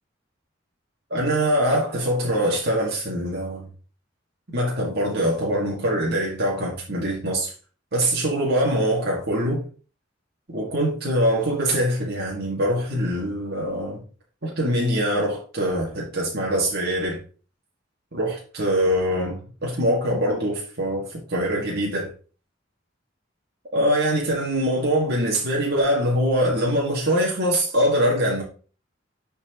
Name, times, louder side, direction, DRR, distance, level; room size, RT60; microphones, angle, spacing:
voice 1, 1.1-3.7 4.5-7.5 7.9-9.6 10.5-14.0 14.4-17.2 18.1-22.1 23.7-28.4, equal, 55° right, 2.1 m, -23 dB
9.8 x 4.6 x 3.0 m
head